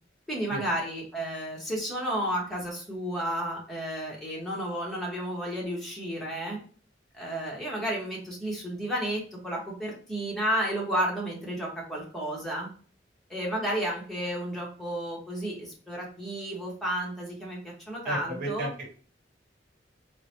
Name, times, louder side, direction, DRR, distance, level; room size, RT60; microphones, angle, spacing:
voice 1, 0.3-6.6 7.1-12.7 13.3-18.7, right 1 dB, ahead, -4 dB, 0.9 m, -32 dB
voice 2, 18.0-18.9, right 1 dB, 50° right, -2 dB, 1.1 m, -33 dB
3.8 x 2.1 x 2.9 m, 0.43 s
head